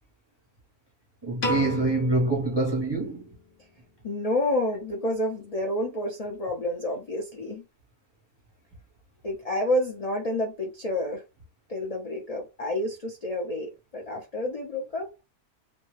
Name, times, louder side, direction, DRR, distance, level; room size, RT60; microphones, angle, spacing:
voice 1, 1.2-3.2, right 2 dB, 25° right, 0.5 m, -25 dB
Piano, 1.4-3.7, left 1 dB, 45° left, 0.8 m, -34 dB
voice 2, 4.0-7.6 9.2-11.2 11.7-15.2, left 1 dB, 60° left, 0.3 m, -29 dB
2.6 x 2.2 x 3.1 m
omnidirectional pair, 1.6 m